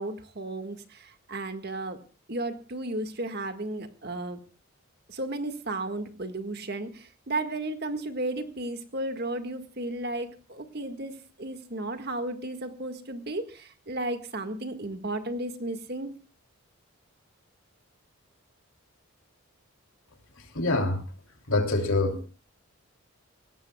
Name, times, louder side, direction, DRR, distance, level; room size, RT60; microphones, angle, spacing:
voice 1, 0.0-2.0 2.3-4.4 5.1-16.1, right 2 dB, 45° right, 7 dB, 1.8 m, -34 dB
voice 2, 20.5-21.0 21.5-22.3, left 2 dB, 70° left, 3 dB, 3.2 m, -25 dB
23.0 x 18.0 x 2.3 m, 0.36 s
head